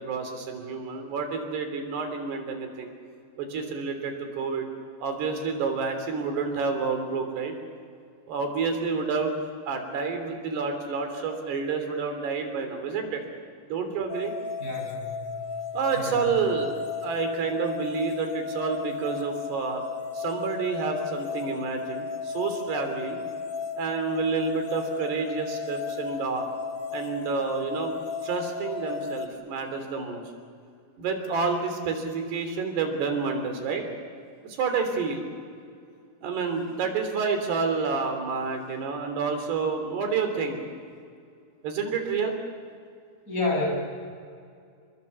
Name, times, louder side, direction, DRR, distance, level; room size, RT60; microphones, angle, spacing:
voice 1, 0.0-2.9 3.4-4.7 5.0-7.5 8.3-9.3 9.7-13.2 13.7-14.3 15.7-19.8 20.2-23.2 23.8-26.5 26.9-28.0 28.2-30.2 31.0-33.8 34.4-35.3 36.2-40.6 41.6-42.4, right 5 dB, 80° right, 5 dB, 5.3 m, -29 dB
sound 1, 14.1-29.3, left 5 dB, 55° left, 2.3 m, -35 dB
voice 2, 14.6-15.3 15.9-16.1 43.3-43.7, left 2 dB, 20° left, 0 dB, 7.6 m, -29 dB
29.0 x 22.0 x 7.2 m, 2.2 s
omnidirectional pair, 4.7 m